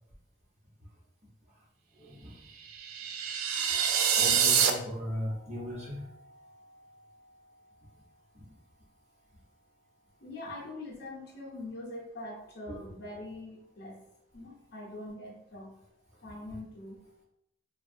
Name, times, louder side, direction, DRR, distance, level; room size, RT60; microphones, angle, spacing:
voice 1, 2.0-2.4 3.7-7.2 16.5-16.6, equal, 35° right, -6 dB, 1.0 m, -39 dB
sound 1, 2.7-4.7, right 8 dB, 80° right, 0.3 m, -26 dB
voice 2, 10.2-14.0 14.3-15.7 16.2-17.0, left 2 dB, 50° left, -2 dB, 0.7 m, -43 dB
2.8 x 2.3 x 2.6 m, 0.81 s
head